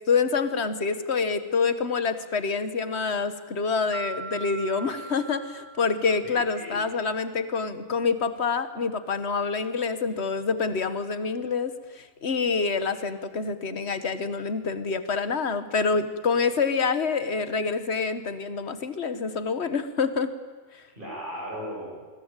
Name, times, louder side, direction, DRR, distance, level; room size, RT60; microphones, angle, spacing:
voice 1, 0.1-20.3 20.7-20.8, left 5 dB, 55° left, 11 dB, 1.7 m, -27 dB
sound 1, 3.9-6.6, right 4 dB, 70° right, 1.6 m, -40 dB
voice 2, 6.2-6.8 21.0-22.1, equal, 40° right, -7 dB, 7.6 m, -37 dB
26.5 x 21.5 x 9.0 m, 1.4 s
omnidirectional pair, 1.3 m